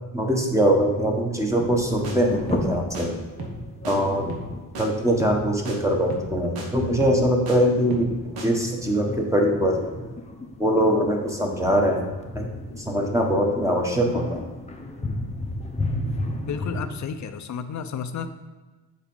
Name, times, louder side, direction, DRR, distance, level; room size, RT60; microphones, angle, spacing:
voice 1, 0.1-3.2 3.8-4.3 4.8-8.1 8.4-9.7 10.6-12.1 12.3-12.4 12.9-14.4, equal, 10° right, 0 dB, 1.1 m, -22 dB
sound 1, 1.4-16.9, left 2 dB, 20° left, 0.8 m, -34 dB
sound 2, 1.6-1.8 2.0-2.2 2.5-2.7 2.9-3.1 3.4-3.6 3.9-4.0 4.3-4.5 4.8-4.9 5.2-5.4 5.7-5.8 6.1-6.3 6.6-6.7 7.0-7.6 7.9-8.1 8.4-8.5, right 2 dB, 75° right, 1.5 m, -35 dB
voice 2, 16.5-18.3, left 7 dB, 50° left, 9 dB, 0.7 m, -32 dB
7.3 x 4.1 x 5.4 m, 1.3 s
cardioid pair, 105°, 37 cm